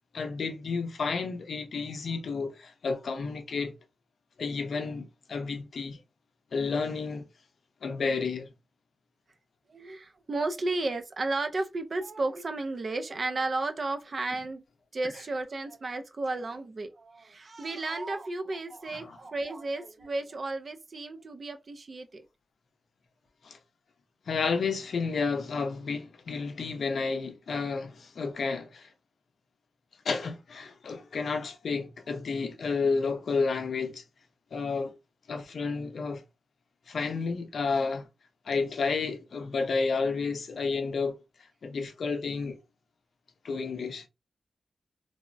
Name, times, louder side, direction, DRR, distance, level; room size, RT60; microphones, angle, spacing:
voice 1, 0.1-3.7 4.4-6.0 6.5-7.2 7.8-8.5 18.9-19.2 23.4-23.6 24.3-28.9 30.0-34.0 34.5-34.9 35.3-36.2 36.9-38.1 38.5-41.2 41.6-42.6 43.4-44.1, left 4 dB, 70° left, 0.5 m, -31 dB
voice 2, 9.7-14.6 14.9-22.2, right 2 dB, 40° right, 0.4 m, -33 dB
3.3 x 2.0 x 2.5 m
wide cardioid pair, 175°, 0 cm